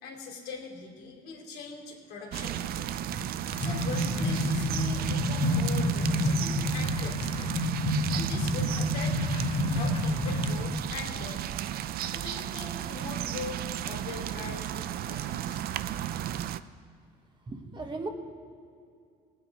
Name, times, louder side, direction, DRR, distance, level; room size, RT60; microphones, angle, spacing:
voice 1, 0.0-3.0 3.6-7.5 8.1-9.2 9.7-11.5 12.1-15.6, left 4 dB, 70° left, 0 dB, 2.7 m, -41 dB
sound 1, 2.3-16.6, right 11 dB, 65° right, 0.5 m, -34 dB
sound 2, 3.1-10.6, left 1 dB, 35° left, 1.4 m, -29 dB
voice 2, 17.5-18.1, right 3 dB, 30° right, 3 dB, 1.4 m, -36 dB
18.5 x 8.7 x 4.7 m, 2.3 s
cardioid pair, 110°, 17 cm